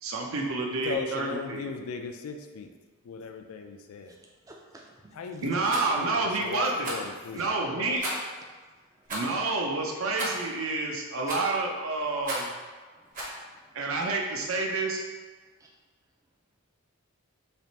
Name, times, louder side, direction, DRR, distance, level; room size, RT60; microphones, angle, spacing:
voice 1, 0.0-1.6 5.4-6.9 7.3-8.0 9.1-12.5 13.7-15.0, right 3 dB, 70° right, 0 dB, 0.6 m, -29 dB
voice 2, 0.7-2.7 3.0-4.1 5.1-8.0, left 5 dB, 75° left, 5 dB, 0.4 m, -37 dB
voice 3, 4.5-5.2 5.5-5.6 7.4-7.5 13.1-13.8 15.6-15.7, right 2 dB, 15° right, -1 dB, 0.3 m, -52 dB
Rattle, 5.6-5.9 6.8-7.1 8.0-8.3 9.1-9.3 10.2-10.5 11.3-11.6 12.2-12.6 13.1-13.4, right 1 dB, 35° right, 0.8 m, -34 dB
3.4 x 2.5 x 4.0 m, 1.4 s
head